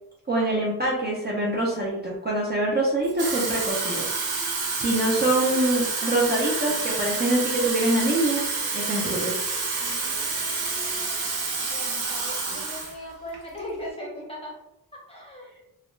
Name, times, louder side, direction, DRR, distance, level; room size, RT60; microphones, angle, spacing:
voice 1, 0.3-4.1 4.7-8.4 8.7-9.3 12.5-12.6, right 1 dB, 25° right, -5 dB, 0.4 m, -24 dB
Water tap faucet / Fill (with liquid), 3.0-13.0 13.3-13.6, right 4 dB, 75° right, 0.8 m, -28 dB
voice 2, 9.8-11.1 11.5-14.6 14.9-15.5, left 1 dB, 15° left, -4 dB, 0.7 m, -39 dB
2.3 x 2.1 x 3.0 m, 0.87 s
wide cardioid pair, 165°, 38 cm